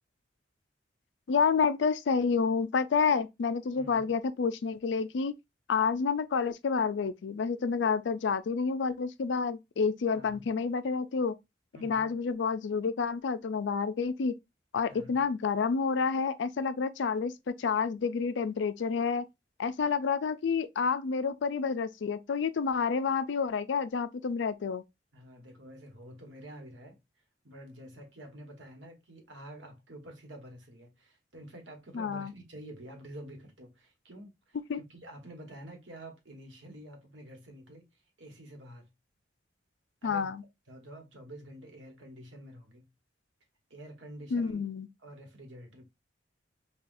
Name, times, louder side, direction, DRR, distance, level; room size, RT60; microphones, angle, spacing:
voice 1, 1.3-5.3 5.7-11.4 11.8-14.3 14.7-19.3 19.6-24.8 31.9-32.3 34.7-34.8 40.0-40.4 44.3-44.9, left 5 dB, 75° left, 0.4 m, -29 dB
voice 2, 3.8-4.1 10.1-10.4 11.7-12.1 14.9-15.1 25.1-27.0 27.4-37.9 38.2-38.9 40.0-40.3 40.7-42.9 43.7-44.6 45.0-45.8, right 1 dB, 85° right, 1.3 m, -48 dB
5.5 x 2.3 x 2.6 m
head